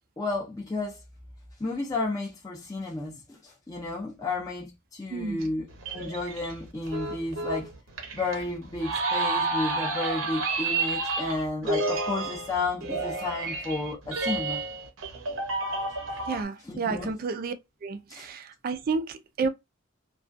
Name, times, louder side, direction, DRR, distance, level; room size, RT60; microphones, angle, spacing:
voice 1, 0.2-1.0 1.6-5.6 5.9-7.7 8.1-14.6 16.6-17.2 18.1-18.3, left 2 dB, 15° left, 0.5 m, -32 dB
voice 2, 5.1-5.5 16.3-17.5 17.8-19.5, right 4 dB, 45° right, 0.3 m, -31 dB
sound 1, 5.4-16.4, right 3 dB, 65° right, 0.7 m, -30 dB
2.4 x 2.3 x 2.5 m
head